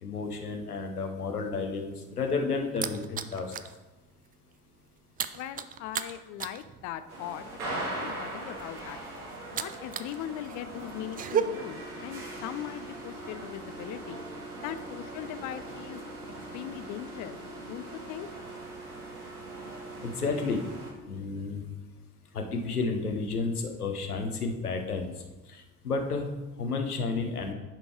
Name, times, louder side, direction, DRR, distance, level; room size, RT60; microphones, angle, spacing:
voice 1, 0.0-3.5 20.0-20.7 21.1-21.6 22.3-26.3 26.6-27.5, left 4 dB, 85° left, 3 dB, 1.1 m, -31 dB
sound 1, 2.0-3.8 4.1-4.3 4.6-10.2 10.4-11.4, right 9 dB, 20° right, 0.4 m, -35 dB
voice 2, 5.3-14.2 14.6-16.0 16.5-17.4 17.7-18.3, left 11 dB, 40° left, 12 dB, 0.6 m, -40 dB
sound 2, 7.1-20.9, right 2 dB, 75° right, 1.9 m, -40 dB
10.5 x 5.3 x 4.5 m, 1.1 s
figure-of-eight pair, 60°, 44 cm